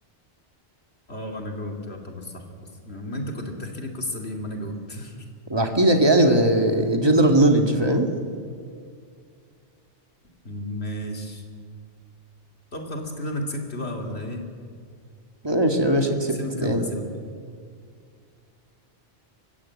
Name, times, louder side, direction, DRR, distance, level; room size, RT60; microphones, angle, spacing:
voice 1, 1.1-2.4 2.9-5.2 10.4-11.4 12.7-14.5 16.3-17.1, left 1 dB, 65° left, 2 dB, 2.9 m, -33 dB
voice 2, 5.5-8.1 15.4-16.9, right 1 dB, 20° right, 4 dB, 2.0 m, -19 dB
23.5 x 15.5 x 8.6 m, 2.2 s
omnidirectional pair, 1.2 m